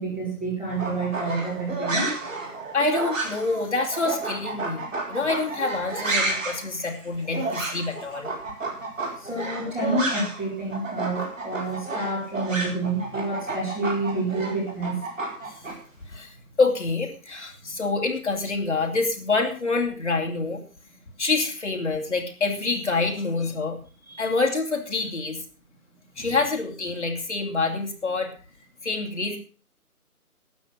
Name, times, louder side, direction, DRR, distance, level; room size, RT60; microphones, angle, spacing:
voice 1, 0.0-2.2 9.2-15.0 26.2-26.3, right 2 dB, 5° right, -9 dB, 2.1 m, -28 dB
sound 1, 0.7-10.5 10.7-15.7, right 3 dB, 55° right, 4.4 m, -31 dB
voice 2, 2.7-8.3 16.1-20.6 21.2-23.8 24.2-25.4 26.2-28.3 28.8-29.4, left 3 dB, 50° left, 2 dB, 2.7 m, -26 dB
12.0 x 8.6 x 6.2 m, 0.38 s
figure-of-eight pair, 170°, 45 cm